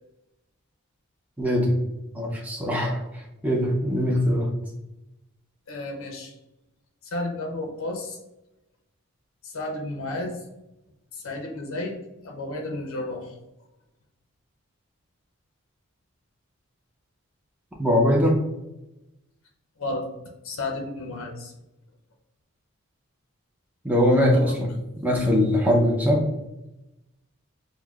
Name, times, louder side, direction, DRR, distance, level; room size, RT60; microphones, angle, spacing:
voice 1, 1.4-1.8 2.1-4.5 17.8-18.4 23.8-24.7 25.0-26.2, equal, 5° right, -2 dB, 0.5 m, -21 dB
voice 2, 5.7-6.3 7.0-8.2 9.4-10.4 11.1-13.4 19.8-20.0 20.4-21.5 24.3-24.5, left 2 dB, 70° left, 2 dB, 0.6 m, -32 dB
6.2 x 2.1 x 2.3 m, 0.95 s
head